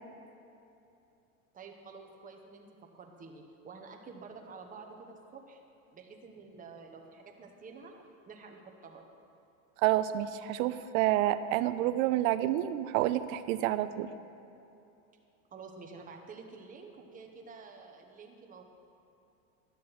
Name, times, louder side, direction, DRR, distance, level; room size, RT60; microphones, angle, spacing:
voice 1, 1.5-2.7 2.9-5.6 5.9-7.9 8.3-9.1 15.5-18.6, right 4 dB, 20° right, 1 dB, 1.1 m, -49 dB
voice 2, 9.8-14.1, right 13 dB, 70° right, 13 dB, 0.7 m, -28 dB
12.0 x 7.4 x 5.8 m, 2.8 s
supercardioid pair, 125°, 43 cm